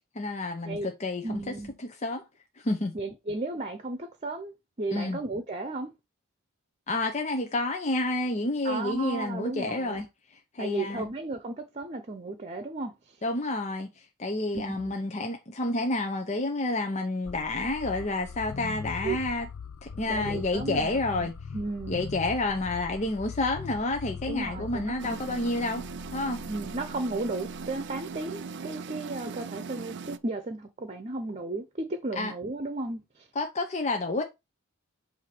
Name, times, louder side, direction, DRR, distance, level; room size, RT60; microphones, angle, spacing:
voice 1, 0.1-1.5 1.8-2.2 2.6-2.9 4.9-5.2 6.9-10.0 10.5-11.1 13.2-19.5 19.8-21.3 21.9-25.8 26.1-26.4 32.2-32.3 33.3-34.2, left 2 dB, 35° left, 0.8 m, -29 dB
voice 2, 1.2-1.8 2.9-4.5 4.8-5.9 8.6-10.1 10.6-13.2 14.5-14.9 19.0-19.2 20.0-22.0 24.3-25.2 26.5-33.3, right 2 dB, 30° right, 0.9 m, -34 dB
sound 1, 17.3-28.1, left 5 dB, 80° left, 0.6 m, -41 dB
Engine Running Loop, 25.0-30.2, right 5 dB, 55° right, 0.5 m, -39 dB
7.9 x 2.8 x 6.1 m
head